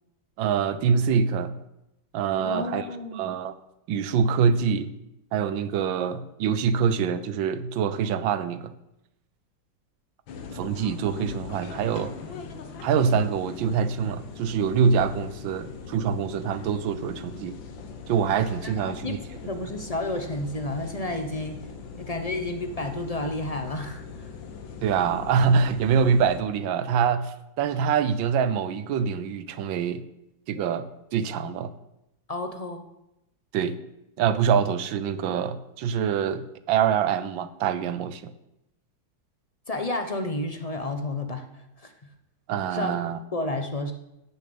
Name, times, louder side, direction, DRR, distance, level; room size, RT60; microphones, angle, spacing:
voice 1, 0.4-1.6 2.1-2.8 3.1-3.5 3.9-4.9 5.3-8.7 10.5-12.1 12.8-17.6 18.1-19.2 24.8-30.0 30.5-31.7 33.5-33.8 34.2-38.3 42.5-43.2, right 6 dB, 85° right, 13 dB, 1.5 m, -25 dB
voice 2, 2.4-3.2 18.6-21.6 21.9-24.3 32.3-32.9 39.7-41.9 42.7-43.9, left 2 dB, 35° left, 6 dB, 0.6 m, -31 dB
sound 1, 10.3-26.4, left 5 dB, 80° left, 1.9 m, -41 dB
10.5 x 7.0 x 8.7 m, 0.89 s
omnidirectional pair, 2.0 m